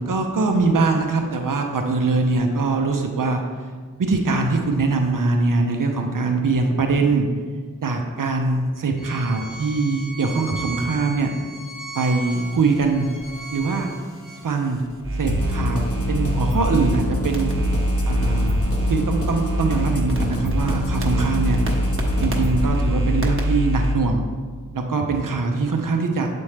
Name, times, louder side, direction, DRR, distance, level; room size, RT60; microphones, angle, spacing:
voice 1, 0.0-3.4 4.0-7.3 7.8-11.3 11.9-13.1 13.5-13.9 14.4-14.8 15.2-17.5 18.1-18.6 18.9-21.6 22.2-24.2 24.7-26.3, right 3 dB, 80° right, 4 dB, 0.6 m, -22 dB
Bowed string instrument, 9.0-14.4, right 2 dB, 75° left, 1.3 m, -37 dB
sound 1, 12.3-17.0 17.3-23.9, equal, 40° right, 1.0 m, -25 dB
sound 2, 15.3-22.7, left 1 dB, 45° left, 0.8 m, -27 dB
7.1 x 4.2 x 3.3 m, 1.5 s
wide cardioid pair, 40°, 32 cm